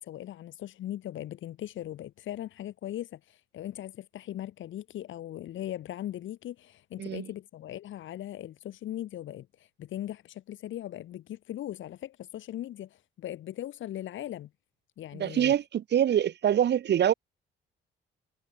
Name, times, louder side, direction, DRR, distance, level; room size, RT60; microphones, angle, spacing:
voice 1, 0.0-14.5 15.0-15.5, left 12 dB, 75° left, 2.2 m, -39 dB
voice 2, 15.1-17.1, right 10 dB, 60° right, 1.4 m, -25 dB
cardioid pair, 90°, 20 cm